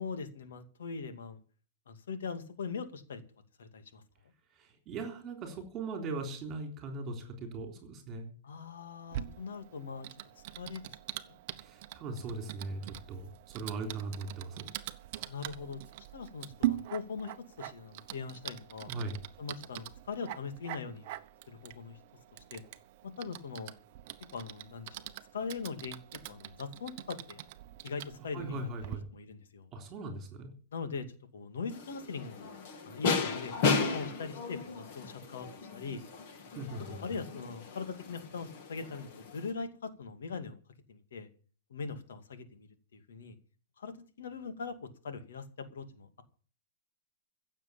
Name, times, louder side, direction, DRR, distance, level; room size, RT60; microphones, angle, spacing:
voice 1, 0.0-1.4 1.9-3.2 3.6-4.0 8.4-10.1 10.4-10.9 11.3-11.4 15.3-15.8 16.1-17.3 17.6-18.9 19.4-21.1 21.5-22.0 22.5-22.6 23.2-23.7 24.3-26.0 26.3-27.4 27.8-28.7 29.1-29.7 30.7-32.5 32.8-36.0 37.0-40.6 40.9-41.3 41.7-43.3 43.8-44.8 45.0-46.2, left 5 dB, 85° left, 8 dB, 2.4 m, -41 dB
voice 2, 4.6-8.3 11.6-14.7 18.9-19.2 28.3-29.1 29.7-30.5 36.6-37.0, right 3 dB, 20° right, 4 dB, 3.7 m, -39 dB
Typing, 9.1-29.0, right 14 dB, 35° right, 0.9 m, -43 dB
sound 1, 31.7-39.5, left 4 dB, 35° left, 2.1 m, -35 dB
16.0 x 7.3 x 8.7 m, 0.42 s
hypercardioid pair, 175°, 0 cm